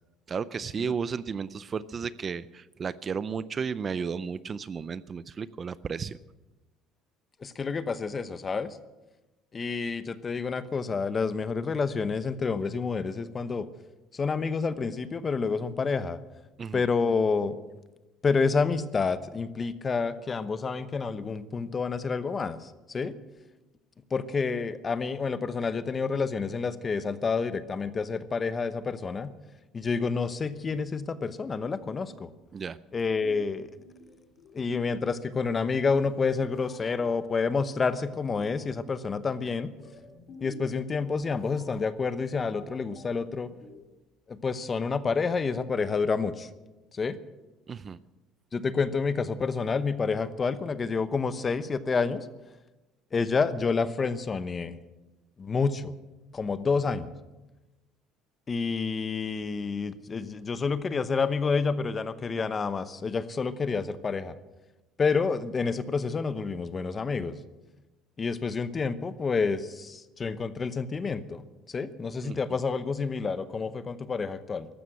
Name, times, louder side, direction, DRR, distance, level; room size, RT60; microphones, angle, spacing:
voice 1, 0.3-6.2 16.6-16.8 32.5-32.8 47.7-48.0 72.2-72.4, right 6 dB, 30° right, 17 dB, 0.4 m, -33 dB
voice 2, 7.4-8.8 9.5-13.7 14.1-16.2 16.7-17.6 18.2-23.2 24.1-29.3 29.7-32.3 32.9-33.7 34.5-39.7 40.4-43.5 44.3-46.5 46.9-47.2 48.5-52.3 53.1-54.8 55.4-55.9 56.3-57.1 58.5-64.3 65.0-67.4 68.2-71.4 71.7-74.7, left 4 dB, 25° left, 14 dB, 0.9 m, -29 dB
sound 1, 31.5-44.0, left 3 dB, 50° left, 2.8 m, -52 dB
14.5 x 12.5 x 8.2 m, 1.1 s
cardioid pair, 130°, 0 cm